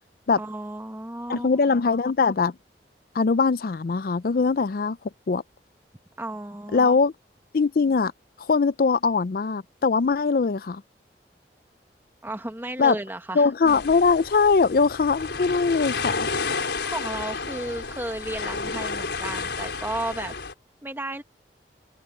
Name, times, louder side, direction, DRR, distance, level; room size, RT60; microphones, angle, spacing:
voice 1, 0.4-1.6 6.2-7.0 12.2-13.5 16.8-20.3 20.8-21.2, right 1 dB, 15° right, 1.6 m, -33 dB
voice 2, 1.3-2.5 3.1-5.0 5.3-5.4 6.7-7.1 7.5-8.1 8.4-10.8 12.8-13.0 13.3-16.3, left 4 dB, 55° left, 0.4 m, -21 dB
sound 1, 13.7-20.5, left 4 dB, 80° left, 4.7 m, -31 dB
head